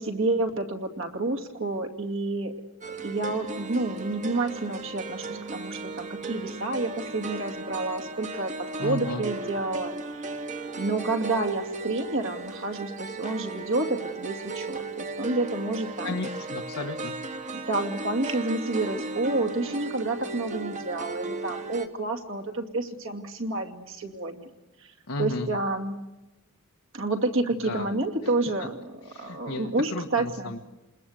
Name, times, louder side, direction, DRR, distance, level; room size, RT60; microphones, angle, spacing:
voice 1, 0.0-2.5 2.9-8.5 8.8-10.4 10.8-16.2 17.5-24.5 24.8-24.9 25.2-26.0 26.9-30.5, right 2 dB, 60° right, 2 dB, 2.4 m, -29 dB
sound 1, 2.8-21.9, right 3 dB, 35° right, 1.4 m, -36 dB
voice 2, 8.8-9.3 16.0-17.1 25.1-25.5 27.6-27.9 29.1-30.6, left 2 dB, 90° left, 2 dB, 1.5 m, -34 dB
28.0 x 20.5 x 8.1 m, 1.0 s
head